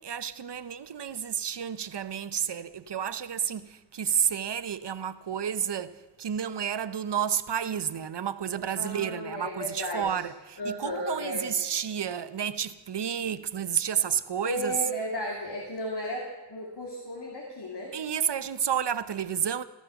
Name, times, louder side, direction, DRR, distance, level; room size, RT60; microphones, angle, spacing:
voice 1, 0.0-14.7 17.9-19.6, right 8 dB, 75° right, 0.8 m, -31 dB
voice 2, 8.8-10.2 10.6-11.5 14.4-18.0, equal, 70° left, 2.9 m, -34 dB
15.0 x 13.0 x 7.0 m
wide cardioid pair, 50°, 41 cm